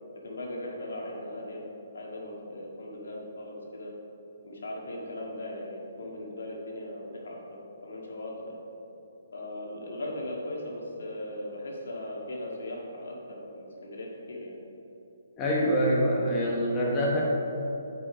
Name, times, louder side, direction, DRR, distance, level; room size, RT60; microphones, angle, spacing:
voice 1, 0.2-1.6 1.9-3.9 4.4-8.6 9.3-14.6, left 1 dB, 80° left, -2 dB, 1.8 m, -38 dB
voice 2, 15.4-17.2, equal, 20° left, -4 dB, 1.2 m, -25 dB
8.1 x 5.3 x 5.0 m, 3.0 s
hypercardioid pair, 155°, 0 cm